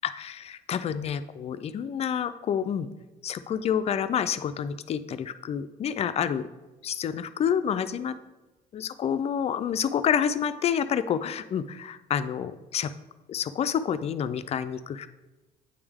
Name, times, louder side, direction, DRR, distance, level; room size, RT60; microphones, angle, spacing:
voice 1, 0.0-2.9 3.2-6.5 6.8-8.2 8.7-12.9 13.3-15.1, left 8 dB, 40° left, 12 dB, 0.4 m, -28 dB
8.8 x 3.4 x 3.5 m, 1.1 s
cardioid pair, 110°, 17 cm